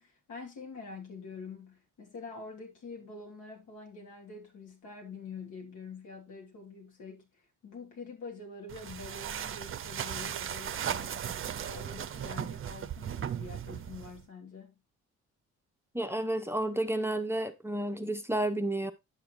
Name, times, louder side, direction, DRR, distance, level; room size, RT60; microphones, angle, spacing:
voice 1, 0.0-7.3 7.6-14.8, left 4 dB, 75° left, 3.3 m, -46 dB
sound 1, 8.7-14.2, right 9 dB, 45° right, 0.6 m, -37 dB
voice 2, 15.9-18.9, right 1 dB, 10° right, 0.8 m, -31 dB
10.5 x 6.9 x 2.5 m
cardioid pair, 90°, 30 cm